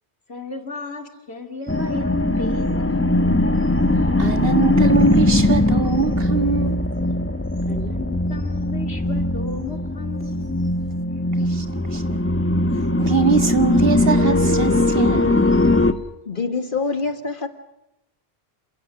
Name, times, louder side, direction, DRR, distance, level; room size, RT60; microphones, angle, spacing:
voice 1, 0.3-3.6 7.7-10.6, left 3 dB, 80° left, 2.8 m, -35 dB
sound 1, 1.7-15.9, left 2 dB, 15° left, 1.0 m, -20 dB
voice 2, 4.2-6.8 11.4-12.2 13.0-15.4, right 5 dB, 65° right, 2.0 m, -23 dB
voice 3, 16.3-17.5, left 4 dB, 55° left, 1.9 m, -25 dB
27.5 x 16.5 x 9.6 m
omnidirectional pair, 1.1 m